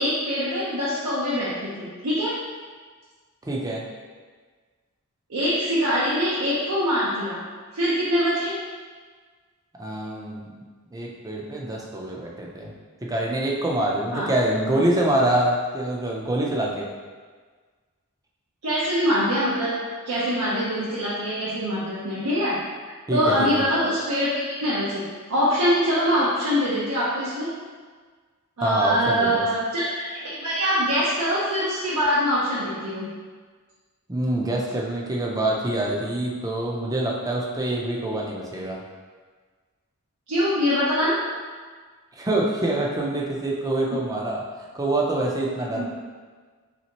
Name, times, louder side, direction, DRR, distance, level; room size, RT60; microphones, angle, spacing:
voice 1, 0.0-2.3 5.3-7.4 7.7-8.5 14.1-14.3 18.6-19.7 20.0-22.6 23.1-27.5 28.6-33.1 40.3-41.2 45.7-45.9, equal, 80° right, -9 dB, 0.8 m, -24 dB
voice 2, 3.4-3.9 9.8-10.5 10.9-12.7 13.0-16.9 23.1-23.6 28.6-29.4 34.1-38.8 42.1-44.4 44.7-45.9, right 1 dB, 15° right, -2 dB, 0.5 m, -25 dB
4.2 x 3.4 x 2.9 m, 1.5 s
head